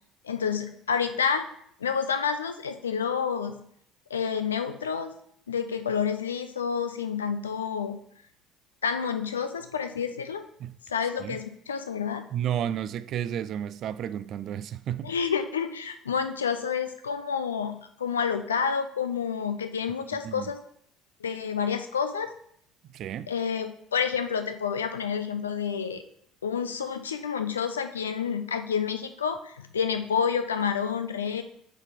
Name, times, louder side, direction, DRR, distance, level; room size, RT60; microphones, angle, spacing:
voice 1, 0.2-1.5 1.8-3.6 4.1-5.1 5.5-8.0 8.8-10.4 10.9-12.3 15.0-20.6 21.2-22.3 23.3-26.0 26.4-31.4, left 6 dB, 80° left, 0.5 m, -29 dB
voice 2, 12.3-15.1 20.2-20.5 22.9-23.3, right 10 dB, 50° right, 0.3 m, -32 dB
8.3 x 4.0 x 3.6 m
figure-of-eight pair, 55°, 0 cm